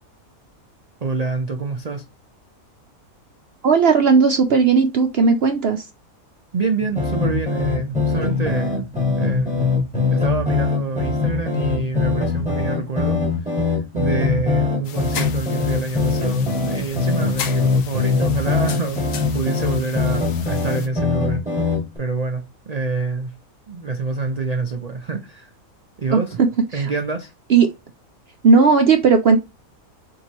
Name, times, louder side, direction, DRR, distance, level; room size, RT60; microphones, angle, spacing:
voice 1, 1.0-2.0 6.5-8.8 9.2-9.7 10.1-21.5 22.0-23.3 23.7-25.5 26.0-26.3 26.7-27.3, right 4 dB, 90° right, 0.3 m, -26 dB
voice 2, 3.6-5.9 26.1-26.5 26.7-26.9 27.5-27.7 28.4-29.4, right 5 dB, 60° right, 0.7 m, -15 dB
sound 1, 6.8-22.0, left 4 dB, 5° right, 1.3 m, -22 dB
sound 2, 14.8-20.9, left 8 dB, 70° left, 1.0 m, -35 dB
4.4 x 3.6 x 2.8 m
omnidirectional pair, 1.5 m